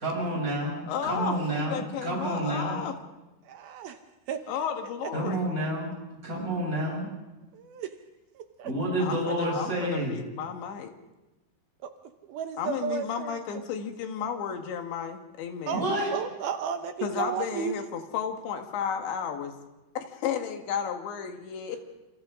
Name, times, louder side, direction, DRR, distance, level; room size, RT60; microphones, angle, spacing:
voice 1, 0.0-2.8 5.1-5.9 6.2-7.1 8.6-10.1 15.7-16.1, right 1 dB, 15° right, -4 dB, 7.7 m, -29 dB
voice 2, 0.9-3.0 4.5-5.4 9.0-10.9 12.6-15.9 17.0-19.5 20.0-21.8, left 7 dB, 85° left, 5 dB, 4.0 m, -33 dB
voice 3, 3.5-4.0 4.3-4.4 7.5-7.9 8.4-8.7 11.8-11.9 12.3-13.4 15.7-15.9 16.1-17.8, right 7 dB, 70° right, 7 dB, 2.6 m, -33 dB
28.0 x 27.5 x 3.8 m, 1.1 s
omnidirectional pair, 5.0 m